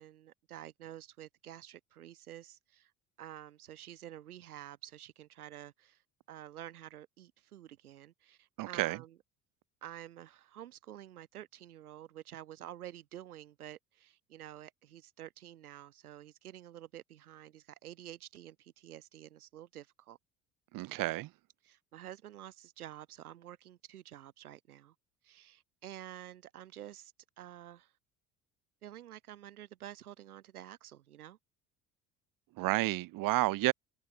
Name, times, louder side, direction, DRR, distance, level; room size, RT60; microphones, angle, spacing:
voice 1, 0.0-2.9 3.2-6.0 6.3-9.2 9.8-20.2 21.6-24.9 25.2-27.9 28.8-31.4, right 12 dB, 75° right, 4.2 m, -49 dB
voice 2, 8.6-9.0 20.7-21.3 32.6-33.7, right 19 dB, 45° right, 1.1 m, -30 dB
figure-of-eight pair, 60°, 45 cm